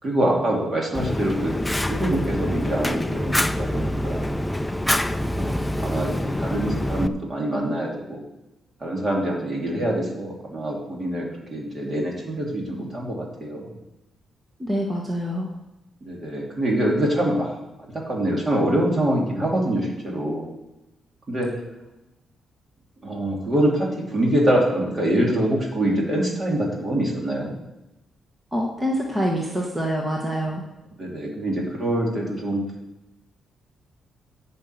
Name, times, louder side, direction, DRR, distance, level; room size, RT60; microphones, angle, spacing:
voice 1, 0.0-1.5 1.9-4.4 5.3-8.2 8.8-13.7 16.0-17.5 17.8-20.4 21.3-21.5 23.0-27.5 31.0-32.6, right 1 dB, 25° right, -2 dB, 2.9 m, -25 dB
Fire, 0.9-7.1, left 1 dB, 5° left, 0.4 m, -25 dB
voice 2, 14.6-15.5 28.5-30.6, equal, 10° right, -1 dB, 1.3 m, -25 dB
11.0 x 5.7 x 8.3 m, 0.99 s
cardioid pair, 155°, 0 cm